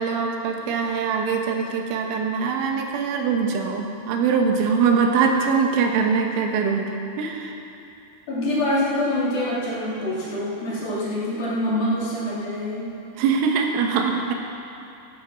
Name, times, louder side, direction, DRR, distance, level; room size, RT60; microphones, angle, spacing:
voice 1, 0.0-6.9 7.2-7.6 13.2-14.3, right 5 dB, 80° right, 2 dB, 3.8 m, -22 dB
voice 2, 8.3-13.0, left 1 dB, 50° left, -8 dB, 4.9 m, -25 dB
15.5 x 14.0 x 6.0 m, 2.7 s
omnidirectional pair, 5.6 m